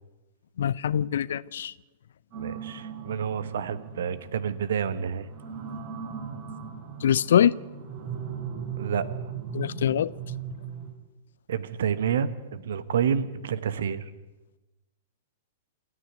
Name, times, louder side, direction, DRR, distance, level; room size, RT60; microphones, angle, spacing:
voice 1, 0.6-1.7 7.0-7.6 9.5-10.1, left 9 dB, 60° left, 21 dB, 0.6 m, -23 dB
sound 1, 2.3-10.9, right 7 dB, 40° right, 6.7 m, -38 dB
voice 2, 2.4-5.3 8.8-9.1 11.5-14.1, right 7 dB, 60° right, 15 dB, 1.3 m, -29 dB
28.0 x 9.9 x 9.4 m, 1.1 s
figure-of-eight pair, 105°, 0 cm